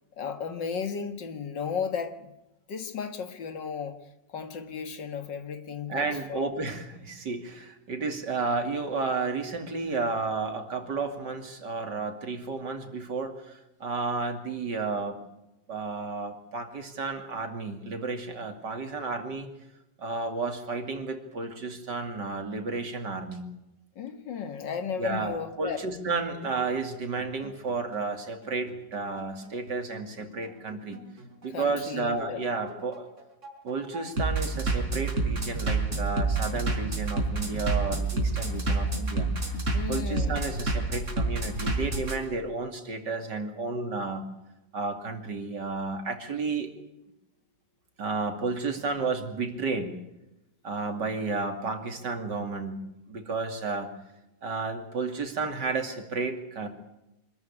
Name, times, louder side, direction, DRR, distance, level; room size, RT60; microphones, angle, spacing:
voice 1, 0.2-2.3 2.7-4.0 4.3-6.5 24.0-25.8 31.5-32.5 39.7-40.4, left 6 dB, 75° left, 9 dB, 2.4 m, -34 dB
voice 2, 5.9-15.2 15.7-19.5 20.0-23.4 25.0-31.0 31.4-33.1 33.6-39.3 39.9-44.2 44.7-46.7 48.0-50.0 50.6-52.8 53.1-53.9 54.4-56.7, right 4 dB, 70° right, 5 dB, 3.2 m, -32 dB
Bass drum, 26.2-42.2, right 3 dB, 40° right, 4.9 m, -29 dB
25.5 x 13.5 x 9.9 m, 0.91 s
omnidirectional pair, 1.9 m